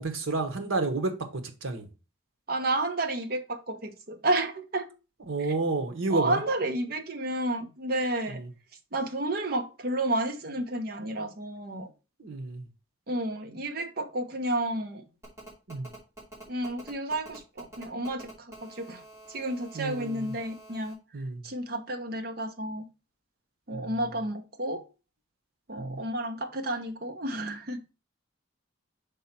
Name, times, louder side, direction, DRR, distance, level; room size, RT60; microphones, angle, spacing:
voice 1, 0.0-1.9 5.3-6.4 8.3-8.5 12.2-12.6 15.7-15.9 19.7-20.3 21.1-21.4 23.7-24.0 25.8-26.0, right 3 dB, 80° right, 1.1 m, -31 dB
voice 2, 2.5-4.9 6.1-8.4 8.9-11.9 13.1-15.0 16.5-19.0 19.3-21.0 21.4-22.9 23.7-24.8 25.7-27.9, right 1 dB, 50° right, 0.8 m, -31 dB
Telephone, 15.2-20.9, right 2 dB, 15° right, 2.5 m, -48 dB
5.4 x 4.3 x 4.3 m
head